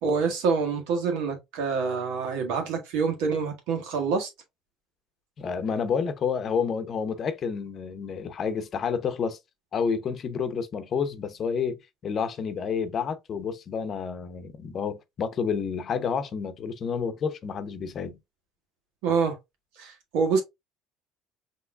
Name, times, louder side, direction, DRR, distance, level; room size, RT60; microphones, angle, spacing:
voice 1, 0.0-4.3 19.0-19.3 19.8-20.4, right 5 dB, 75° right, 1.6 m, -26 dB
voice 2, 5.4-9.4 9.7-18.2, left 6 dB, 45° left, 0.8 m, -29 dB
5.7 x 3.0 x 2.3 m
supercardioid pair, 85°, 0 cm